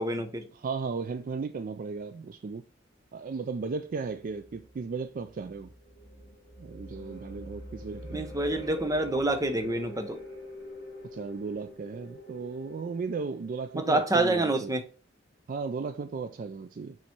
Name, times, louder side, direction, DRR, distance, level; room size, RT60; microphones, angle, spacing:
voice 1, 0.0-0.5 8.1-10.2 13.7-14.8, right 2 dB, 20° right, 0.8 m, -27 dB
voice 2, 0.6-2.6 3.1-5.7 6.6-8.3 11.1-14.7 15.5-17.0, right 4 dB, 45° right, 0.3 m, -35 dB
sound 1, 4.2-14.4, equal, 50° left, 3.3 m, -46 dB
7.0 x 3.1 x 4.4 m
head